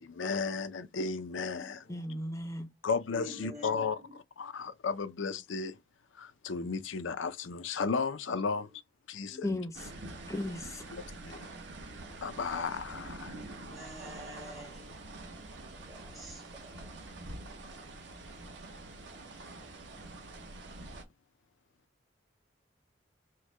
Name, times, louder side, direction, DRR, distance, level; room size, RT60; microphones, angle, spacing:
voice 1, 0.0-1.8 2.8-4.0 4.4-5.8 6.1-8.7 9.1-9.6 10.9-11.5 12.2-13.4, left 5 dB, 85° left, 0.6 m, -34 dB
voice 2, 1.3-1.7 3.1-4.2 9.3-9.4 13.6-14.9 15.7-17.0, equal, 20° right, 0.8 m, -48 dB
voice 3, 1.9-2.7 3.4-3.6 9.4-9.9 10.3-10.8, left 1 dB, 15° left, 0.6 m, -36 dB
sound 1, 9.7-21.0, right 2 dB, 65° right, 1.0 m, -46 dB
4.6 x 2.2 x 4.5 m
head